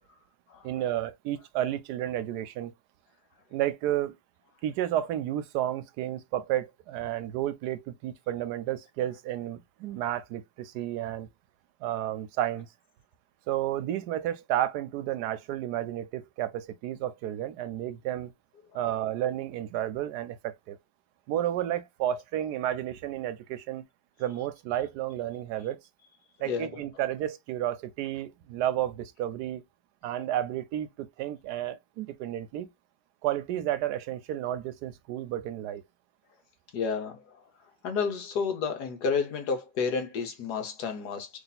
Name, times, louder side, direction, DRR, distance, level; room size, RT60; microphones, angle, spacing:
voice 1, 0.6-2.7 3.5-4.2 4.6-11.3 11.8-12.7 13.5-18.3 18.7-20.8 21.3-23.8 24.2-25.8 26.4-29.6 30.0-32.7 33.2-35.8, right 12 dB, 85° right, 1.2 m, -31 dB
voice 2, 26.5-26.8 36.7-37.2 37.8-41.3, left 5 dB, 85° left, 1.5 m, -30 dB
3.3 x 2.7 x 3.9 m
omnidirectional pair, 1.7 m